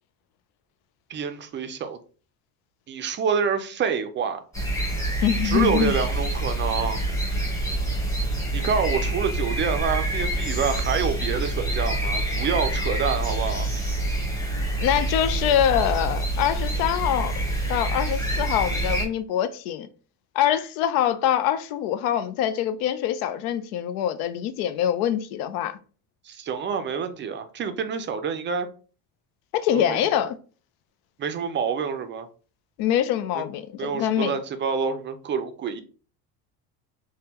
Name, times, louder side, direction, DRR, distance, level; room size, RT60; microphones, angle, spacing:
voice 1, 1.1-2.0 2.9-4.4 5.4-7.0 8.5-13.7 26.2-28.7 29.7-30.0 31.2-32.3 33.3-33.4 33.8-35.8, right 6 dB, 30° right, 0.4 m, -27 dB
sound 1, 4.5-19.0, right 1 dB, 10° left, 0.9 m, -26 dB
voice 2, 5.2-5.9 14.8-17.4 17.7-19.9 20.4-25.8 29.5-30.4 32.8-34.3, left 10 dB, 85° left, 0.5 m, -24 dB
3.4 x 2.2 x 2.8 m
cardioid pair, 115°, 40 cm